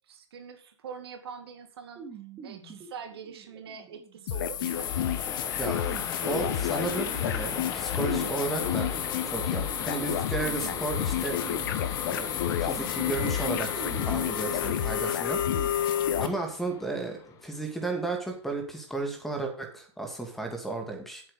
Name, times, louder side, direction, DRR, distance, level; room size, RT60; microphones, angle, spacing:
voice 1, 0.1-2.1 2.4-5.2, right 6 dB, 55° right, 6 dB, 2.1 m, -44 dB
sound 1, 2.0-15.7, right 5 dB, 20° right, 2.7 m, -45 dB
sound 2, 4.3-16.3, left 10 dB, 45° left, 1.1 m, -30 dB
sound 3, 4.6-18.0, left 8 dB, 20° left, 1.1 m, -38 dB
voice 2, 6.3-9.0 9.2-11.4 12.1-12.3 12.6-15.4 16.2-21.2, right 3 dB, ahead, 5 dB, 2.4 m, -33 dB
8.1 x 7.7 x 6.7 m, 0.44 s
hypercardioid pair, 135°, 16 cm